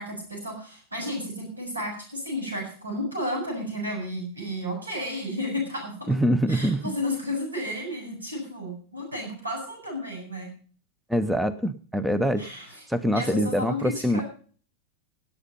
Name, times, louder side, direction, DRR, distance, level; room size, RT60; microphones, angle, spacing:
voice 1, 0.0-6.2 6.5-10.5 12.4-12.8 13.1-14.2, left 1 dB, 80° right, 1 dB, 7.2 m, -32 dB
voice 2, 6.1-6.9 11.1-12.5 12.9-14.2, equal, 5° right, 15 dB, 0.8 m, -24 dB
18.0 x 8.5 x 5.4 m, 0.43 s
figure-of-eight pair, 90°, 0 cm